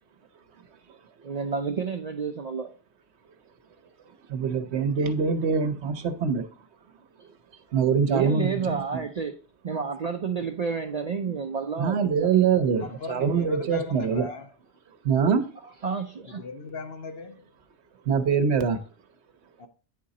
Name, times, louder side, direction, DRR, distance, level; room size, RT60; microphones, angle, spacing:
voice 1, 1.2-2.7 8.1-9.4 9.6-12.3 15.5-16.4, right 5 dB, 50° right, 0.5 m, -30 dB
voice 2, 4.3-6.5 7.7-9.0 11.8-14.3 15.0-15.5 18.1-18.8, right 6 dB, 70° right, 1.1 m, -24 dB
voice 3, 12.8-14.5 16.3-17.4 19.6-19.7, left 4 dB, 65° left, 1.0 m, -38 dB
9.3 x 3.8 x 4.0 m
omnidirectional pair, 1.2 m